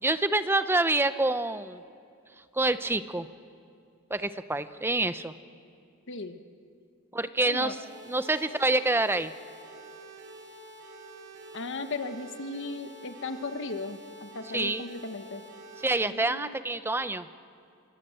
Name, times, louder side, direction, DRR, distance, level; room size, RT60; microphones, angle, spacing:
voice 1, 0.0-1.8 2.5-3.3 4.1-5.3 7.1-7.8 8.1-9.3 14.5-14.9 15.8-17.3, right 2 dB, 10° right, 12 dB, 0.7 m, -27 dB
voice 2, 6.1-6.4 7.4-7.8 11.5-15.4 16.0-16.6, left 3 dB, 60° left, 8 dB, 1.2 m, -37 dB
sound 1, 7.8-16.0, right 2 dB, 55° right, 6.0 m, -48 dB
27.5 x 25.0 x 7.8 m, 2.4 s
head